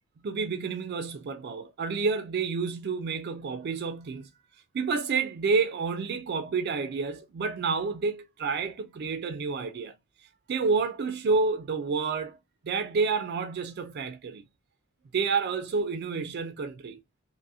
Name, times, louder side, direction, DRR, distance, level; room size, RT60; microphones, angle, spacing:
voice 1, 0.2-4.3 4.7-9.9 10.5-12.4 12.6-14.4 15.1-17.0, right 4 dB, 50° right, 0.3 m, -29 dB
2.7 x 2.6 x 2.5 m
head